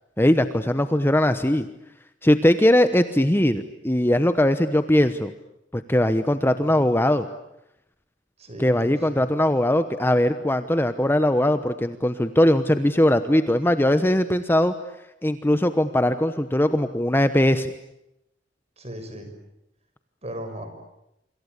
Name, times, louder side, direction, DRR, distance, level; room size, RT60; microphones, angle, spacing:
voice 1, 0.2-1.7 2.2-5.3 5.7-7.3 8.6-14.7 15.2-17.7, left 1 dB, 10° left, 10 dB, 1.0 m, -20 dB
voice 2, 6.4-6.8 8.4-9.2 18.8-19.3 20.2-20.7, equal, 35° right, 7 dB, 6.6 m, -37 dB
27.5 x 26.0 x 8.3 m, 0.84 s
head